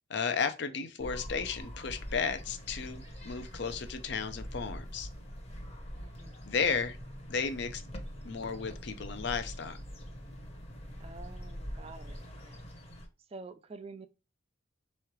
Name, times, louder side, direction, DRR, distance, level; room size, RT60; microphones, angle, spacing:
voice 1, 0.1-5.1 6.5-7.0 7.3-7.8 8.2-9.8, left 5 dB, 60° left, 0.6 m, -34 dB
sound 1, 1.0-13.1, equal, 30° left, 0.9 m, -44 dB
voice 2, 6.0-6.3 11.0-12.6 13.3-14.1, right 3 dB, 30° right, 0.4 m, -48 dB
3.7 x 3.1 x 4.4 m
head